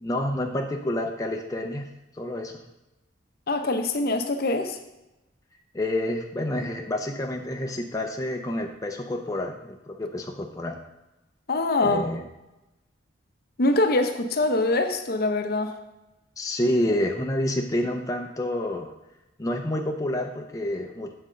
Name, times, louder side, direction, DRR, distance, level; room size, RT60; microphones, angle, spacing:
voice 1, 0.0-1.9 2.2-2.5 5.7-10.8 11.8-12.2 16.4-18.9 19.4-21.1, left 1 dB, 20° left, 2 dB, 0.6 m, -28 dB
voice 2, 3.5-4.8 11.5-12.0 13.6-15.7, left 2 dB, 50° left, 7 dB, 0.7 m, -24 dB
7.7 x 4.3 x 6.3 m, 0.95 s
head